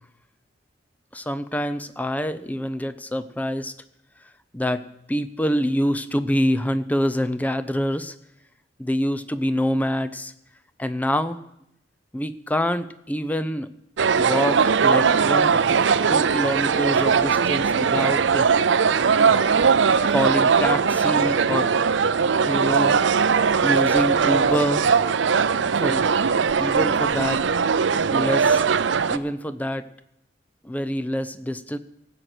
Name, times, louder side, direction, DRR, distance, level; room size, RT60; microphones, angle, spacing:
voice 1, 1.1-3.7 4.5-8.1 8.8-10.3 10.8-11.4 12.1-13.7 14.2-15.8 16.1-18.5 20.1-21.7 22.4-23.0 23.6-24.9 25.8-26.1 26.6-27.4 28.1-28.6 29.1-29.9 30.6-31.8, equal, 10° left, 13 dB, 0.5 m, -26 dB
sound 1, 14.0-29.2, right 6 dB, 75° right, 0.5 m, -20 dB
18.5 x 7.9 x 6.1 m, 0.80 s
head